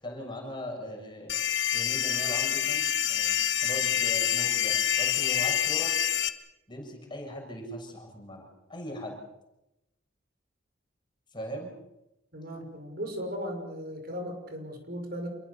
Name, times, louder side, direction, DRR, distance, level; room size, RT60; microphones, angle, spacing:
voice 1, 0.0-1.4 1.7-5.9 6.7-9.2 11.3-11.7, equal, 25° left, 1 dB, 7.0 m, -39 dB
sound 1, 1.3-6.3, left 10 dB, 60° left, 1.6 m, -27 dB
voice 2, 12.3-15.3, equal, 50° right, 5 dB, 6.0 m, -37 dB
28.5 x 22.5 x 7.1 m, 0.91 s
head